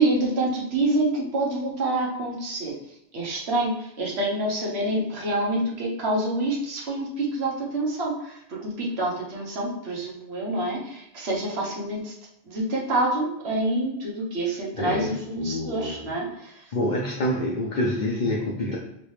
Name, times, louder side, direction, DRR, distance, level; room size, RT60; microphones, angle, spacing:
voice 1, 0.0-2.7 3.1-12.1 12.5-16.5, right 2 dB, 75° right, -2 dB, 1.2 m, -27 dB
voice 2, 14.7-16.1 16.7-18.8, left 1 dB, 55° left, -2 dB, 0.6 m, -27 dB
3.2 x 2.9 x 3.1 m, 0.82 s
omnidirectional pair, 1.1 m